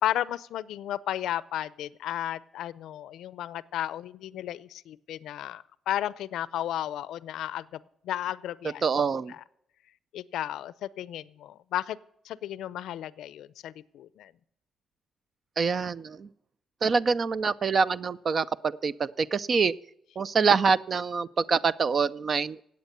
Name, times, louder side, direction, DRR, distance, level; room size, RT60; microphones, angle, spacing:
voice 1, 0.0-8.8 9.3-9.4 10.1-12.0 12.2-14.3, left 12 dB, 80° left, 19 dB, 0.5 m, -34 dB
voice 2, 8.8-9.3 15.6-16.3 16.8-19.7 20.2-22.6, right 5 dB, 45° right, 16 dB, 0.4 m, -25 dB
17.0 x 8.2 x 6.7 m, 0.75 s
cardioid pair, 90°, 0 cm